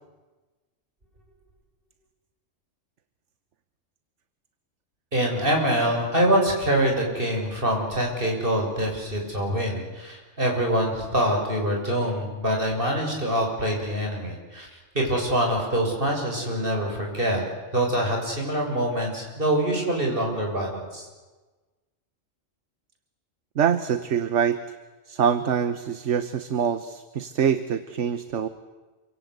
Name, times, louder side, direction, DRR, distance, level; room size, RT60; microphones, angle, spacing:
voice 1, 5.1-17.4 17.7-21.1, right 1 dB, 45° right, 1 dB, 7.2 m, -25 dB
voice 2, 23.6-24.6 25.1-28.5, right 8 dB, 65° right, 12 dB, 1.4 m, -24 dB
27.5 x 25.5 x 8.2 m, 1.2 s
omnidirectional pair, 1.3 m